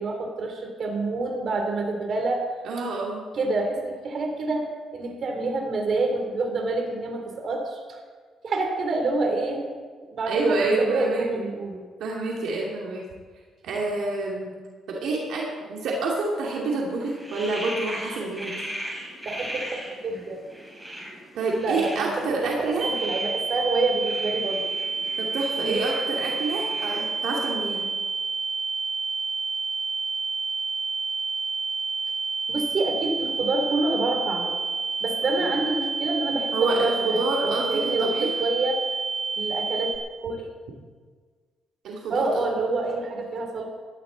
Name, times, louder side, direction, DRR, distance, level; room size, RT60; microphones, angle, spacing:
voice 1, 0.0-2.4 3.3-4.7 4.9-8.0 8.4-9.7 10.1-11.8 19.2-20.4 21.6-24.6 25.6-25.8 32.5-34.5 35.0-38.8 39.4-39.9 40.2-40.5 42.1-43.6, right 3 dB, 55° right, 2 dB, 3.2 m, -27 dB
voice 2, 2.6-3.2 10.3-11.4 12.0-13.0 13.6-14.5 14.9-18.5 21.3-22.9 25.2-27.8 35.4-35.5 36.5-38.3 41.8-42.3, right 3 dB, 80° right, -2 dB, 2.6 m, -27 dB
sound 1, 16.9-27.7, equal, 10° right, 5.4 m, -39 dB
sound 2, 22.8-40.0, right 4 dB, 40° right, 1.9 m, -29 dB
17.5 x 13.0 x 4.1 m, 1.5 s
cardioid pair, 90°, 0 cm